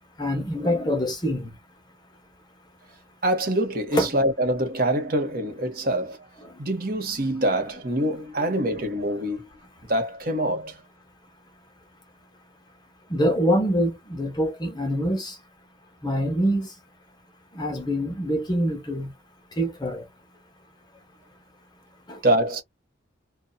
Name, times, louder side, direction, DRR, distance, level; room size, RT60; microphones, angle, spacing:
voice 1, 0.2-1.5 3.9-4.1 6.4-6.5 8.4-8.5 13.1-15.4 16.0-16.7 17.5-19.1 19.6-20.1 22.1-22.2, equal, 20° left, 0.7 m, -25 dB
voice 2, 3.2-6.2 6.6-9.5 9.9-10.8 22.2-22.6, right 1 dB, 45° right, 0.9 m, -25 dB
2.6 x 2.2 x 2.3 m
head